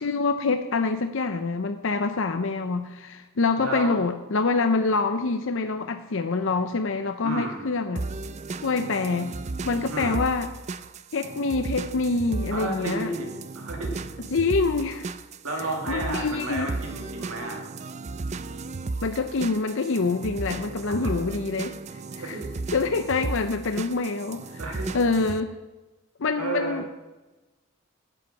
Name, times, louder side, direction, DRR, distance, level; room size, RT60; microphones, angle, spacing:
voice 1, 0.0-8.0 8.6-9.4 9.6-10.5 11.1-13.1 14.3-15.1 15.9-16.7 19.0-21.8 22.2-22.4 22.7-24.6 24.9-25.5 26.2-26.9, left 3 dB, 60° left, 7 dB, 0.6 m, -26 dB
voice 2, 3.6-4.0 7.2-7.7 9.9-10.2 12.5-14.1 15.4-17.6 20.9-21.1 22.2-22.5 24.6-25.0 26.4-26.9, right 2 dB, 75° right, 1 dB, 2.0 m, -32 dB
sound 1, 8.0-25.4, right 3 dB, 30° right, 0.4 m, -35 dB
10.0 x 7.9 x 7.2 m, 1.1 s
head